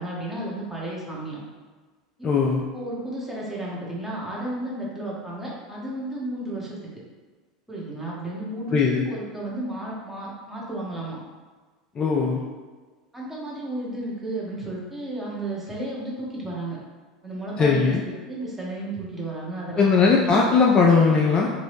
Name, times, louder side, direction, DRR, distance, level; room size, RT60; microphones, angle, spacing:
voice 1, 0.0-1.4 2.2-2.3 2.7-6.8 7.7-8.8 9.1-11.2 13.1-16.8 17.2-20.3, right 1 dB, 10° right, -5 dB, 1.1 m, -33 dB
voice 2, 2.2-2.6 8.7-9.0 12.0-12.4 17.6-18.0 19.8-21.5, left 5 dB, 30° left, -2 dB, 0.4 m, -19 dB
2.9 x 2.6 x 3.3 m, 1.4 s
figure-of-eight pair, 80°, 3 cm